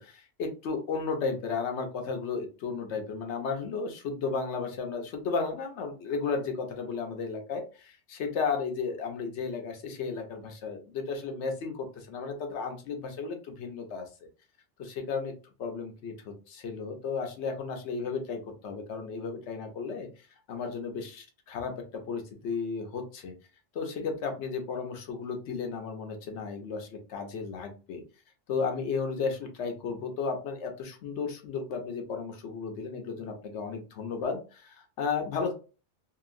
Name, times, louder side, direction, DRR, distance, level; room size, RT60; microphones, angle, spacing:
voice 1, 0.0-14.3 14.8-15.3 15.6-20.1 20.5-23.3 23.7-28.0 28.5-35.5, left 5 dB, 80° left, 4 dB, 1.0 m, -34 dB
2.8 x 2.7 x 2.5 m, 0.34 s
omnidirectional pair, 1.2 m